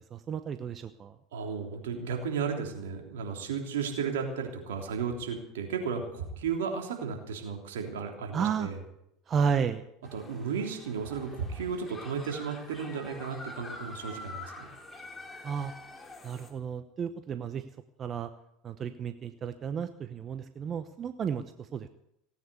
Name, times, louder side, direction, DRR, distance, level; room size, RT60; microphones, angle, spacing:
voice 1, 0.1-1.1 8.3-8.7 9.3-9.8 15.4-15.7 16.2-17.6 18.0-18.3 18.6-21.9, right 7 dB, 35° right, 10 dB, 0.9 m, -32 dB
voice 2, 1.3-8.8 10.1-14.7, right 6 dB, 75° right, 2 dB, 3.3 m, -34 dB
sound 1, 10.0-16.5, left 2 dB, 15° left, 3.4 m, -46 dB
17.5 x 9.4 x 8.3 m, 0.80 s
hypercardioid pair, 80°, 0 cm